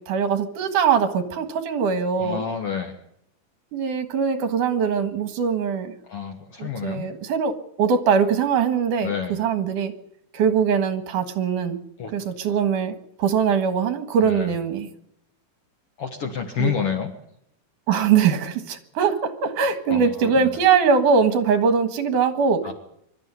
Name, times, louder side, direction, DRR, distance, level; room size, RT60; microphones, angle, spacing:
voice 1, 0.1-2.4 3.7-5.9 6.6-7.5 7.8-9.9 10.3-11.8 12.1-14.9 16.6-16.7 17.9-22.6, right 6 dB, 75° right, 8 dB, 3.1 m, -22 dB
voice 2, 2.2-3.0 6.1-7.1 9.0-9.3 12.0-12.1 14.2-14.5 16.0-17.1 19.9-20.5 22.6-22.7, left 7 dB, 50° left, 5 dB, 2.1 m, -29 dB
24.0 x 13.0 x 9.6 m, 0.76 s
omnidirectional pair, 3.8 m